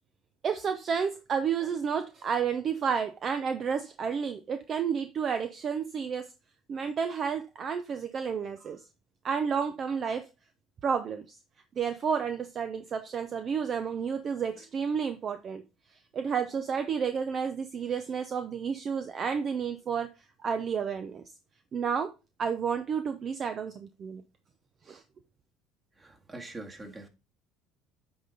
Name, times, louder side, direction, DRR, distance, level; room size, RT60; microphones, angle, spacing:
voice 1, 0.4-6.3 6.7-8.8 9.2-10.3 10.8-11.4 11.8-15.6 16.1-20.1 20.4-21.2 21.7-22.1 22.4-24.2 24.9-25.0, right 6 dB, 45° right, 0.6 m, -31 dB
voice 2, 26.0-27.1, right 2 dB, 25° right, 1.9 m, -43 dB
8.6 x 4.0 x 3.9 m
hypercardioid pair, 70°, 0 cm